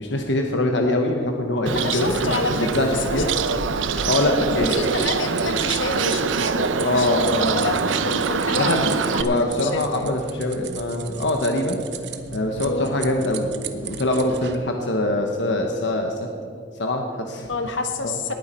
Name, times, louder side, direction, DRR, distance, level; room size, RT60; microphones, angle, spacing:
voice 1, 0.0-2.1 2.5-3.3 4.0-4.8 6.8-7.8 8.5-8.9 9.2-11.8 12.3-16.1 16.8-17.5 18.0-18.2, left 1 dB, 70° left, 3 dB, 1.1 m, -23 dB
voice 2, 1.7-3.6 4.5-10.2 12.6-12.9 17.5-18.3, left 3 dB, 85° left, 5 dB, 1.4 m, -28 dB
Bird, 1.7-9.2, right 5 dB, 90° right, 0.6 m, -24 dB
sound 1, 4.7-14.6, right 6 dB, 60° right, 0.9 m, -37 dB
19.0 x 9.4 x 4.4 m, 2.3 s
head